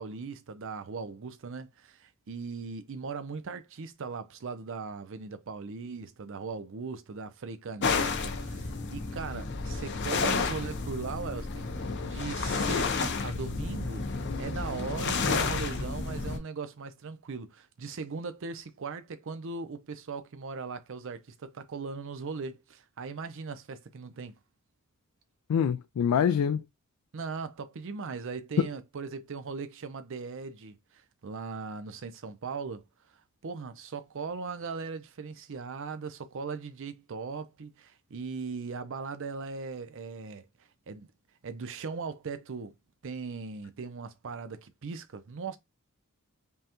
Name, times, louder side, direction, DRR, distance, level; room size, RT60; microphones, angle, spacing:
voice 1, 0.0-24.3 27.1-30.8 31.2-32.8 33.4-40.5 40.9-41.1 41.4-42.7 43.0-45.6, right 4 dB, 60° right, 0.5 m, -39 dB
sound 1, 7.8-16.4, left 4 dB, 50° left, 0.7 m, -31 dB
voice 2, 25.5-26.6, left 8 dB, 75° left, 0.3 m, -25 dB
5.3 x 2.2 x 2.9 m
head